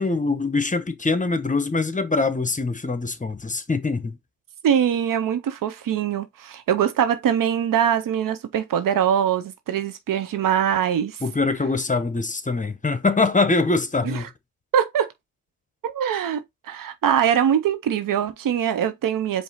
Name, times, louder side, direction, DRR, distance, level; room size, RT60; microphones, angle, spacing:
voice 1, 0.0-4.2 11.2-14.3, left 3 dB, 25° left, 0.8 m, -23 dB
voice 2, 4.6-11.2 14.0-14.2 14.7-15.1 15.8-19.4, right 9 dB, 85° right, 0.6 m, -23 dB
4.9 x 2.6 x 3.9 m
cardioid pair, 55°, 32 cm